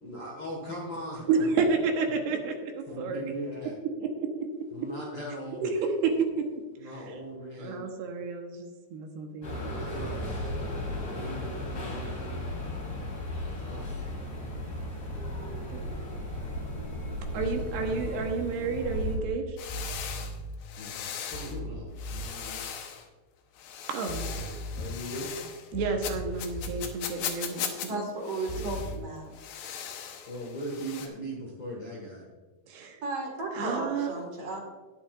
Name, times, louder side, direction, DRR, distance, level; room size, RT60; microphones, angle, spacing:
voice 1, 0.0-1.4 2.9-3.8 4.7-5.8 6.8-7.9 9.7-12.2 13.5-13.9 17.3-18.1 20.8-22.6 24.4-25.3 28.5-28.7 30.3-32.3, equal, 55° left, -2 dB, 1.3 m, -40 dB
voice 2, 1.3-3.2 4.0-4.3 5.6-5.7 6.0-6.3 7.6-9.5 15.7-15.8 17.3-19.4 23.9-24.3 25.7-28.0 32.7-33.0 33.5-34.1, right 5 dB, 75° right, 3 dB, 3.1 m, -30 dB
sound 1, 9.4-19.2, left 1 dB, 35° left, 4.5 m, -35 dB
sound 2, 18.0-18.2 19.7-20.7 21.3-22.6 24.1-25.2 25.7-26.9 28.5-29.0, equal, 85° left, 4.9 m, -38 dB
sound 3, 19.6-21.6 22.0-23.1 23.6-25.7 26.0-27.9 28.2-29.0 29.3-31.1, left 8 dB, 70° left, 2.5 m, -39 dB
voice 3, 27.9-29.3 33.0-34.6, right 2 dB, 45° right, 0 dB, 2.2 m, -34 dB
20.0 x 7.1 x 2.5 m, 1.3 s
omnidirectional pair, 4.8 m